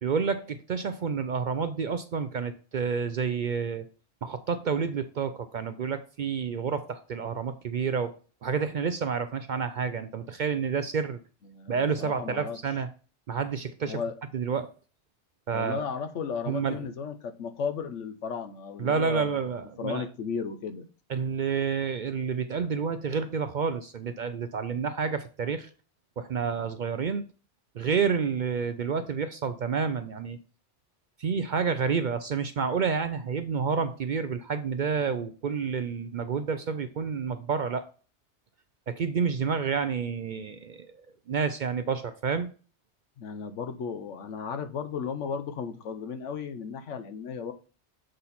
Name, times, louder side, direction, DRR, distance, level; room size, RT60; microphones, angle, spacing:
voice 1, 0.0-3.9 4.2-8.1 8.4-11.2 11.7-12.9 13.3-14.0 14.3-14.7 15.5-15.8 16.4-16.8 18.8-20.1 21.1-25.7 26.2-27.2 27.7-30.4 31.2-37.9 38.9-40.9 41.3-42.5, right 6 dB, 60° right, 0.5 m, -29 dB
voice 2, 11.5-12.6 13.8-14.1 15.5-19.3 19.8-20.8 43.2-47.5, left 6 dB, 85° left, 1.2 m, -35 dB
7.7 x 4.1 x 4.1 m
omnidirectional pair, 1.2 m